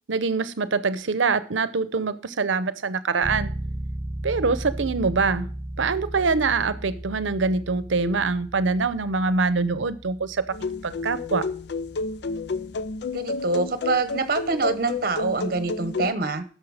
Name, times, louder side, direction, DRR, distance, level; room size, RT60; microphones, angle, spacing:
voice 1, 0.1-3.5 4.2-5.5 5.8-10.4 10.8-11.4, right 4 dB, 85° right, 0.7 m, -24 dB
Bass guitar, 3.2-12.9, right 1 dB, 25° right, 1.4 m, -36 dB
sound 1, 10.5-16.1, left 3 dB, 60° left, 0.4 m, -31 dB
voice 2, 13.1-16.4, right 3 dB, 50° right, 1.0 m, -25 dB
11.5 x 6.7 x 4.8 m
head